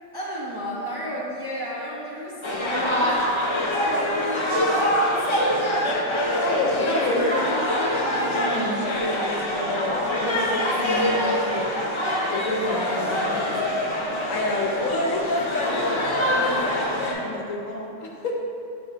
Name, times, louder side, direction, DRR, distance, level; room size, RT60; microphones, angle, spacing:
voice 1, 0.1-5.2, equal, 25° right, -7 dB, 0.6 m, -32 dB
sound 1, 2.4-17.1, left 1 dB, 35° left, 0.5 m, -24 dB
voice 2, 6.2-11.8 12.3-13.7 14.3-18.3, left 2 dB, 75° left, 0 dB, 1.1 m, -29 dB
6.1 x 4.4 x 3.8 m, 2.6 s
omnidirectional pair, 1.4 m